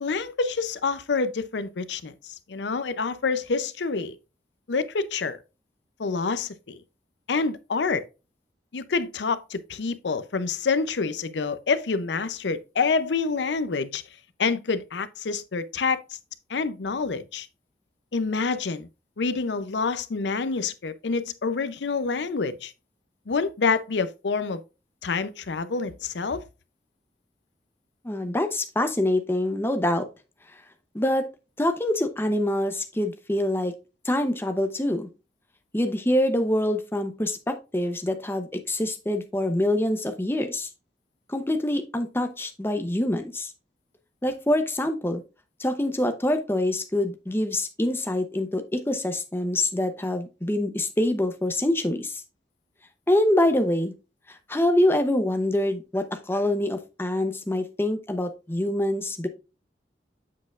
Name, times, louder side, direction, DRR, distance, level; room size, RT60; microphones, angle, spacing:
voice 1, 0.0-4.1 4.7-5.4 6.0-6.8 7.3-8.0 8.7-14.0 14.4-16.0 16.5-17.5 18.1-18.9 19.2-22.7 23.3-24.6 25.0-26.4, left 4 dB, 80° left, 0.6 m, -27 dB
voice 2, 28.0-30.1 30.9-31.3 31.6-33.7 34.0-35.1 35.7-40.7 41.3-43.5 44.2-45.2 45.6-52.2 53.1-53.9 54.3-59.3, left 1 dB, 15° left, 0.7 m, -25 dB
7.5 x 6.3 x 2.4 m
head